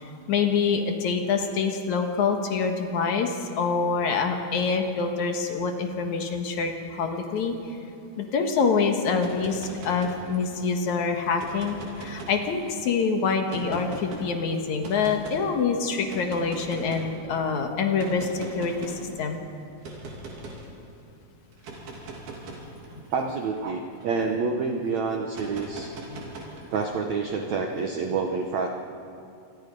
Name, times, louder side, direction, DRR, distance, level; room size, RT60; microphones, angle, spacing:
voice 1, 0.3-7.8 8.2-19.4 22.5-22.7 26.1-26.3, left 5 dB, 60° left, 4 dB, 2.2 m, -26 dB
sound 1, 9.1-10.6 11.3-12.8 13.5-14.2 14.8-15.4 16.1-17.2 18.0-19.1 19.8-20.7 21.5-24.4 25.3-26.9, right 2 dB, 65° right, 4.8 m, -40 dB
voice 2, 23.1-25.9 26.7-28.7, right 4 dB, 90° right, 3 dB, 1.5 m, -28 dB
27.5 x 22.0 x 5.4 m, 2.6 s
omnidirectional pair, 4.9 m